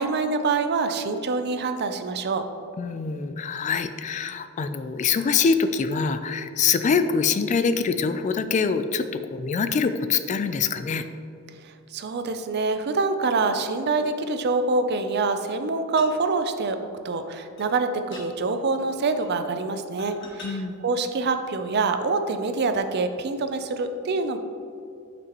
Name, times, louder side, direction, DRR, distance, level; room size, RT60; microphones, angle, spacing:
voice 1, 0.0-2.5 11.6-16.8 17.0-24.4, right 3 dB, 50° right, 8 dB, 0.5 m, -25 dB
voice 2, 2.8-11.0 20.4-20.8, left 5 dB, 35° left, 10 dB, 0.3 m, -24 dB
sound 1, 16.0-16.2 17.1-17.2 17.6-17.7 18.1-18.3 19.2-19.4 20.0-20.5 21.4-21.5, left 3 dB, 60° left, 1.5 m, -43 dB
9.2 x 6.0 x 3.0 m, 2.6 s
head